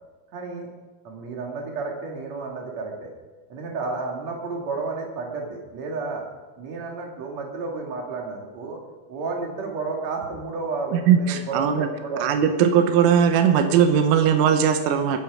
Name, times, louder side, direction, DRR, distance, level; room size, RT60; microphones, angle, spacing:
voice 1, 0.3-0.7 1.0-3.1 3.5-6.2 6.6-8.8 9.1-12.6, right 3 dB, 40° right, -1 dB, 3.1 m, -31 dB
voice 2, 10.9-11.9 12.2-15.2, right 8 dB, 85° right, 6 dB, 3.6 m, -19 dB
22.0 x 11.0 x 5.0 m, 1.3 s
omnidirectional pair, 5.6 m